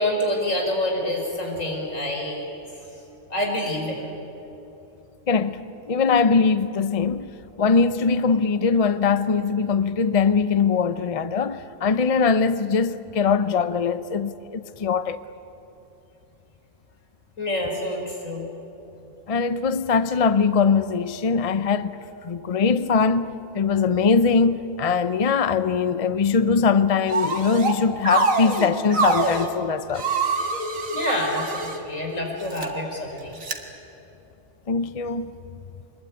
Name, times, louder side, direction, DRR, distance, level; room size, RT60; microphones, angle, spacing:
voice 1, 0.0-2.4 3.3-4.0 17.4-18.5 30.9-33.4, left 1 dB, 75° left, 5.1 m, -27 dB
voice 2, 5.3-5.6 5.9-7.3 7.6-15.2 19.3-21.9 22.2-23.3 23.5-30.0 34.7-35.3, left 5 dB, 40° left, 0.6 m, -21 dB
sound 1, 27.1-27.8 28.1-29.5 30.0-31.8 32.4-32.7 33.4-33.6, right 4 dB, 80° right, 2.2 m, -24 dB
25.5 x 21.0 x 9.2 m
omnidirectional pair, 1.4 m